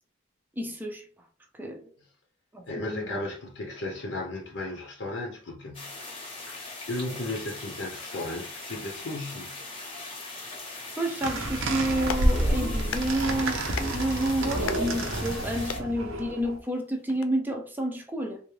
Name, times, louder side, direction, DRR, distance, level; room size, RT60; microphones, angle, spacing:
voice 1, 0.6-1.0 1.5-1.9 2.5-3.2 10.9-18.4, right 1 dB, 10° right, 0.5 m, -30 dB
voice 2, 2.7-5.9 6.4-9.6, left 2 dB, 60° left, 0.7 m, -35 dB
sound 1, 5.7-15.8, left 2 dB, 25° left, 0.9 m, -40 dB
sound 2, 11.2-16.6, right 1 dB, 80° right, 0.7 m, -29 dB
Clapping, 11.9-17.3, left 7 dB, 85° left, 0.3 m, -41 dB
3.5 x 2.5 x 3.1 m
head